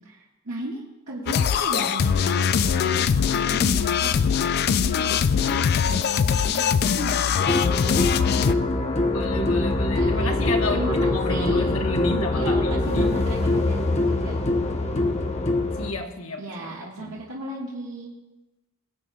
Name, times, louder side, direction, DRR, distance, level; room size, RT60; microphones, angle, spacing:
voice 1, 0.0-5.4 5.9-8.4 9.9-10.4 10.7-11.8 12.3-14.3 16.4-18.1, right 1 dB, 85° right, -6 dB, 1.6 m, -36 dB
sound 1, 1.3-8.5, left 7 dB, 45° left, 0.3 m, -22 dB
sound 2, 7.5-15.9, left 2 dB, 30° left, 0.8 m, -23 dB
voice 2, 9.1-13.1 15.8-16.7 17.0-17.2, left 2 dB, 70° left, 3 dB, 1.2 m, -31 dB
22.0 x 8.5 x 2.3 m, 1.1 s
head